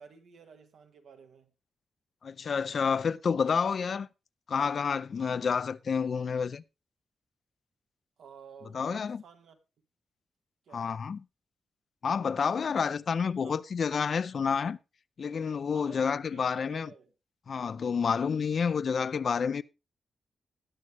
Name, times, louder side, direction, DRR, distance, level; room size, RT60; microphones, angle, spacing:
voice 1, 0.0-1.5 8.2-9.6 10.6-10.9 13.4-13.6 15.6-17.1, right 6 dB, 85° right, 1.8 m, -52 dB
voice 2, 2.2-4.1 4.5-6.6 8.7-9.2 10.7-11.2 12.0-14.8 15.2-16.9 17.5-19.6, left 6 dB, 60° left, 0.5 m, -29 dB
19.0 x 6.5 x 3.3 m
cardioid pair, 95°, 0 cm